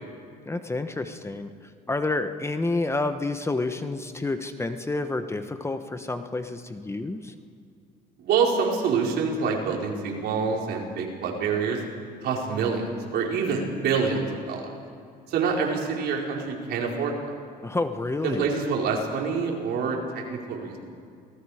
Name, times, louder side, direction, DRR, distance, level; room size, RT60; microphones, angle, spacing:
voice 1, 0.5-7.3 17.6-18.5, left 2 dB, 15° left, 8 dB, 1.1 m, -29 dB
voice 2, 8.2-11.8 12.2-14.7 15.3-17.4 18.2-20.8, right 5 dB, 70° right, -1 dB, 4.5 m, -26 dB
28.5 x 18.5 x 5.0 m, 2.3 s
cardioid pair, 110°, 17 cm